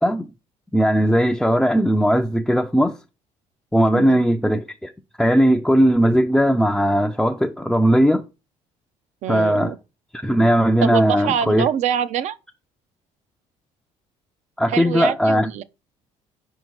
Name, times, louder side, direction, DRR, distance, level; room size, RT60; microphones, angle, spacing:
voice 1, 0.7-3.0 3.7-4.9 5.2-8.2 9.3-9.7 10.1-11.7 14.6-15.5, equal, ahead, 0.4 m, -18 dB
voice 2, 9.2-9.8 10.8-12.4 14.7-15.6, right 9 dB, 60° right, 0.6 m, -25 dB
5.0 x 4.6 x 6.0 m
cardioid pair, 125°, 14 cm